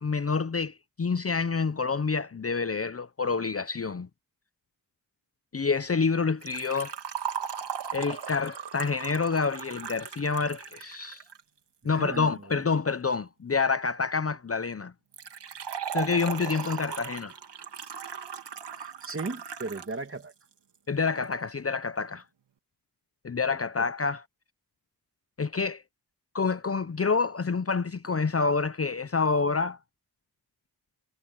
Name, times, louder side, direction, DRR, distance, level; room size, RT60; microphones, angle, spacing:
voice 1, 0.0-4.1 5.5-7.0 7.9-11.2 11.8-14.9 15.9-17.3 20.9-22.2 23.2-24.2 25.4-25.8 26.3-29.8, left 4 dB, 35° left, 0.8 m, -28 dB
Liquid, 6.4-11.4 15.1-19.9 20.2-20.3 21.2-21.3, right 7 dB, 80° right, 2.3 m, -37 dB
voice 2, 11.8-12.7 16.5-16.8 18.8-20.3 23.3-23.9, right 3 dB, 30° right, 2.3 m, -38 dB
cardioid pair, 55°, 41 cm